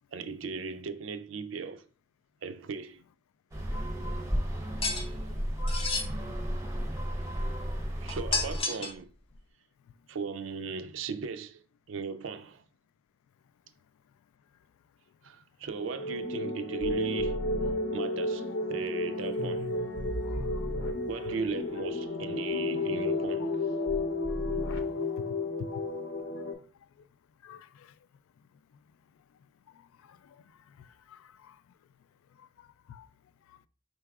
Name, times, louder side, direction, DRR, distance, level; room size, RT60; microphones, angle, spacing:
voice 1, 0.1-1.8 2.4-3.0 4.9-5.1 6.0-6.4 8.0-9.1 10.1-11.6 11.9-12.6 15.2-17.4 17.9-19.7 21.1-23.7, right 5 dB, 65° right, 0.4 m, -37 dB
sound 1, 3.5-8.6, equal, 15° right, 0.6 m, -33 dB
sound 2, 4.8-5.1 5.7-6.1 8.1-9.0, left 3 dB, 30° left, 0.5 m, -31 dB
sound 3, 15.7-26.5, left 2 dB, 60° left, 0.7 m, -32 dB
voice 2, 24.7-25.4 27.4-27.9 30.1-30.2 31.1-31.5 32.9-33.1, left 8 dB, 80° left, 0.3 m, -49 dB
4.6 x 4.0 x 2.3 m
head